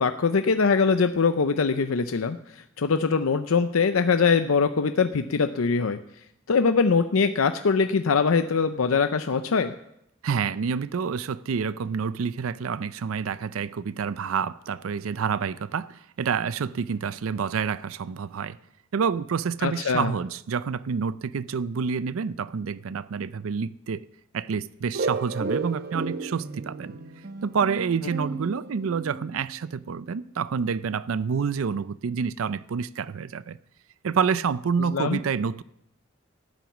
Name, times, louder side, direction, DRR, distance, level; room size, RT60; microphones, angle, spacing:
voice 1, 0.0-6.0 6.5-9.7 19.6-20.1 34.9-35.2, left 5 dB, 90° left, 0.6 m, -22 dB
voice 2, 10.2-18.6 18.9-24.1 24.3-27.0 27.4-33.6 34.0-35.6, right 6 dB, 80° right, 0.5 m, -28 dB
sound 1, 24.9-29.5, right 3 dB, 50° right, 0.8 m, -33 dB
13.0 x 9.2 x 7.1 m
head